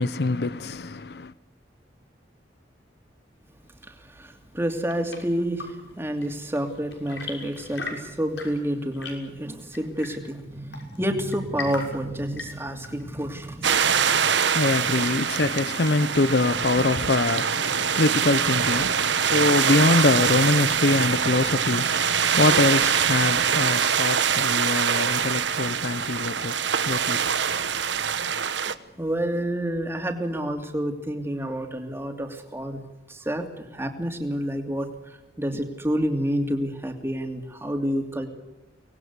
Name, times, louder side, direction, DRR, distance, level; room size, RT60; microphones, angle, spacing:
voice 1, 0.0-1.3 14.0-28.3, left 2 dB, 60° left, 0.7 m, -24 dB
voice 2, 3.8-14.3 29.0-32.8 33.1-38.3, equal, 15° right, 2.8 m, -29 dB
Chirp tweet / Engine / Tap, 4.5-16.0, left 4 dB, 80° left, 6.4 m, -42 dB
sound 1, 13.6-28.8, right 7 dB, 85° right, 1.2 m, -24 dB
25.0 x 19.5 x 8.2 m
head